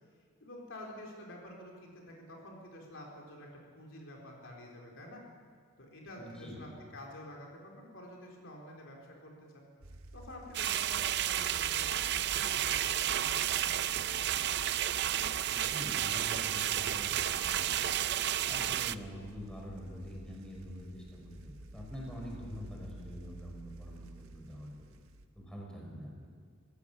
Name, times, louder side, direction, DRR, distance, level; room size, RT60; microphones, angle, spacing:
voice 1, 0.4-5.2 5.8-9.6 10.1-13.7, left 1 dB, 60° left, -1 dB, 4.1 m, -49 dB
voice 2, 6.2-6.7 15.5-17.9 18.4-24.7 25.4-26.3, equal, 5° left, -2 dB, 5.5 m, -45 dB
sound 1, 9.8-25.3, right 1 dB, 75° right, 1.4 m, -52 dB
sound 2, 10.5-18.9, right 11 dB, 50° right, 0.5 m, -31 dB
26.0 x 16.0 x 7.2 m, 2.1 s
head